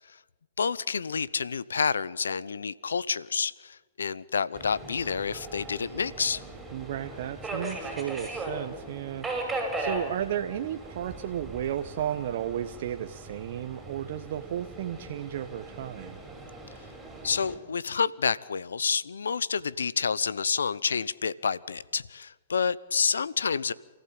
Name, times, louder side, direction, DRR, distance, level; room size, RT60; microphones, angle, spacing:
voice 1, 0.6-6.4 17.2-23.7, left 6 dB, 85° left, 0.8 m, -29 dB
Subway metro underground, 4.5-17.6, right 2 dB, 10° right, 5.9 m, -39 dB
voice 2, 6.7-9.3 9.8-16.2, right 11 dB, 60° right, 1.1 m, -33 dB
27.5 x 15.0 x 8.8 m
hypercardioid pair, 130°, 0 cm